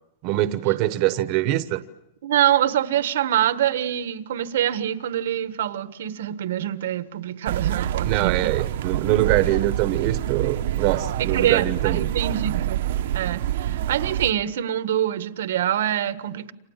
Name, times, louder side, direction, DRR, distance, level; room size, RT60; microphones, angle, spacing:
voice 1, 0.2-1.8 8.0-12.1, right 15 dB, 35° right, 1.0 m, -23 dB
voice 2, 2.2-8.5 11.2-12.9 13.1-16.5, right 11 dB, 85° right, 1.5 m, -25 dB
sound 1, 7.5-14.3, right 12 dB, 65° right, 1.0 m, -26 dB
29.0 x 27.0 x 7.4 m
supercardioid pair, 170°, 0 cm